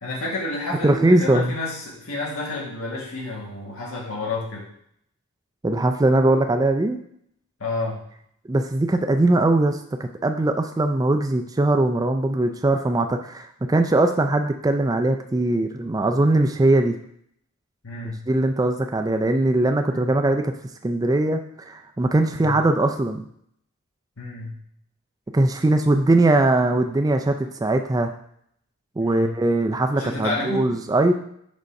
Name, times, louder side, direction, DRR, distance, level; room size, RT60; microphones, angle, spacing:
voice 1, 0.0-4.7 7.6-8.0 17.8-18.2 19.9-20.1 22.4-22.6 24.2-24.6 29.0-29.3 30.0-30.7, left 2 dB, 75° left, -3 dB, 1.7 m, -30 dB
voice 2, 0.8-1.6 5.6-7.0 8.5-17.0 18.0-20.5 20.8-23.2 25.3-28.1 29.0-31.1, right 2 dB, 15° right, 5 dB, 0.3 m, -20 dB
5.3 x 3.7 x 5.2 m, 0.68 s
head